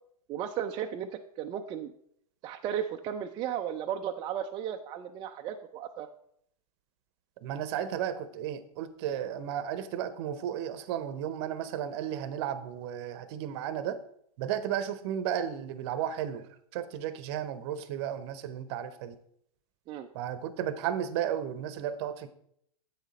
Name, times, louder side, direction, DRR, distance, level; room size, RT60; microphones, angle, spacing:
voice 1, 0.3-1.9 2.4-6.1 19.9-20.1, right 9 dB, 25° right, 4 dB, 0.4 m, -35 dB
voice 2, 7.4-14.0 14.4-19.2 20.1-22.3, right 10 dB, 45° right, 14 dB, 0.8 m, -34 dB
8.1 x 6.2 x 4.1 m, 0.69 s
hypercardioid pair, 115°, 19 cm